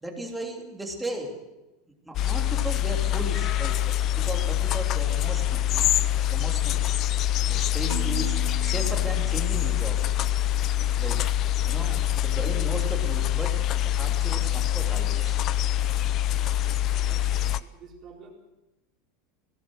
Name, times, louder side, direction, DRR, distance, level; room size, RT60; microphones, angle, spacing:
voice 1, 0.0-1.4 2.0-3.8 4.1-5.9 6.3-6.8 7.4-10.0 11.0-11.2 11.7-13.6 13.8-15.4, right 1 dB, 5° right, 1 dB, 3.0 m, -36 dB
sound 1, 2.1-17.6, left 12 dB, 35° left, 0.6 m, -25 dB
Marimba xylophone, 7.9-10.1, right 14 dB, 60° right, 1.4 m, -42 dB
voice 2, 11.7-12.1 17.0-18.3, right 5 dB, 30° right, 1 dB, 4.5 m, -48 dB
21.0 x 17.0 x 7.8 m, 0.99 s
supercardioid pair, 165°, 0 cm